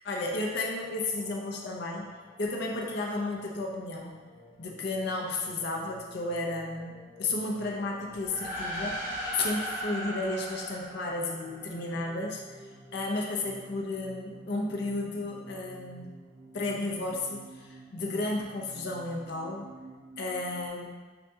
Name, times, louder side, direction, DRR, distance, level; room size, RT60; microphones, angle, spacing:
voice 1, 0.0-2.1 2.4-4.1 4.6-9.0 9.3-16.1 16.5-19.7 20.2-21.0, left 2 dB, 55° left, -1 dB, 0.6 m, -33 dB
sound 1, 0.8-20.7, right 1 dB, 65° right, 1.2 m, -52 dB
sound 2, 8.2-11.9, equal, 10° right, 1.0 m, -37 dB
6.5 x 2.7 x 2.3 m, 1.3 s
head